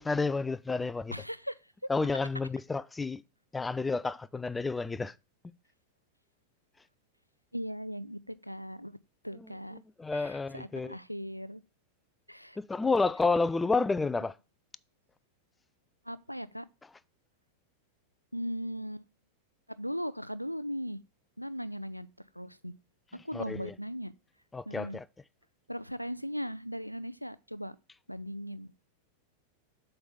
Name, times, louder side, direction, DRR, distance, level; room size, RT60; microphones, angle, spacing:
voice 1, 0.0-1.1 1.9-3.2 3.5-5.1 10.0-11.0 12.6-14.3 23.3-23.7 24.5-25.0, left 3 dB, 10° left, 0.3 m, -30 dB
voice 2, 1.1-1.9 7.5-9.0 9.2-9.8 10.1-11.6 12.3-12.6 16.1-16.7 18.3-19.1 19.8-21.0 21.4-22.1 22.3-22.7 23.2-24.1 24.7-25.0 25.7-27.8 28.1-28.9, equal, 90° left, 0.4 m, -38 dB
7.7 x 3.3 x 5.6 m
figure-of-eight pair, 90°, 0 cm